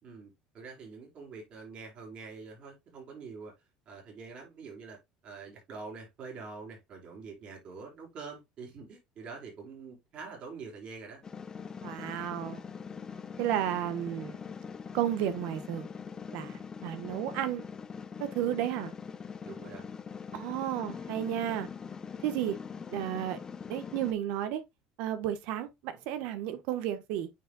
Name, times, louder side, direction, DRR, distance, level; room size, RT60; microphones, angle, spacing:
voice 1, 0.0-3.5 3.9-5.0 5.2-11.2 19.4-19.9, right 4 dB, 50° right, 4.6 m, -45 dB
sound 1, 11.2-24.1, left 6 dB, 25° left, 0.8 m, -42 dB
voice 2, 11.8-12.6 13.4-14.4 14.9-15.9 16.3-17.6 18.2-18.9 20.3-21.7 22.2-22.6 22.9-23.4 23.7-24.6 25.0-27.3, right 11 dB, 75° right, 1.2 m, -32 dB
9.0 x 4.8 x 2.3 m
supercardioid pair, 105°, 2 cm